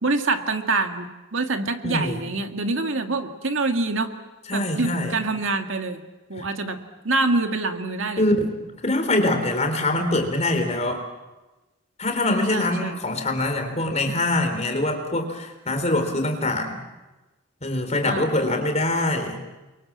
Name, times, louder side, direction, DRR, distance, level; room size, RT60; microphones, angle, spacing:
voice 1, 0.0-4.1 4.5-6.0 6.3-6.8 7.0-8.3 12.5-13.0 18.0-18.3, right 3 dB, 70° right, 6 dB, 2.1 m, -25 dB
voice 2, 1.8-2.2 4.5-5.1 8.2-8.5 8.8-11.0 12.0-16.8 17.6-19.4, left 1 dB, 35° left, 5 dB, 3.9 m, -24 dB
29.5 x 23.5 x 7.6 m, 1.1 s
head